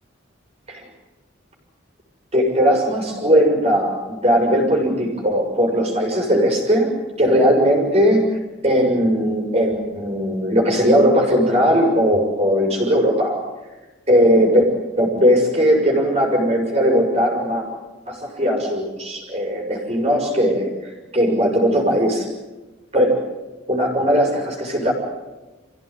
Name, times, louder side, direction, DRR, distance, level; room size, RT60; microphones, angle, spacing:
voice 1, 2.3-6.9 7.2-13.4 14.1-14.7 15.0-17.6 18.1-22.3 22.9-23.2 23.7-24.9, equal, 30° right, 1 dB, 5.6 m, -18 dB
28.0 x 16.0 x 9.7 m, 1.2 s
head